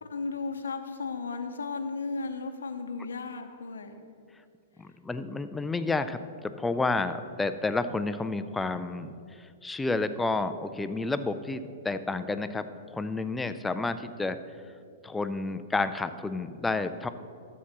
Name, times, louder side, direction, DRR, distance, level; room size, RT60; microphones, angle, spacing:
voice 1, 0.0-4.0, left 4 dB, 80° left, 7 dB, 0.7 m, -35 dB
voice 2, 4.8-9.1 9.4-14.4 15.0-17.1, left 3 dB, 10° left, 11 dB, 0.4 m, -30 dB
12.5 x 7.3 x 3.0 m, 2.3 s
hypercardioid pair, 110°, 0 cm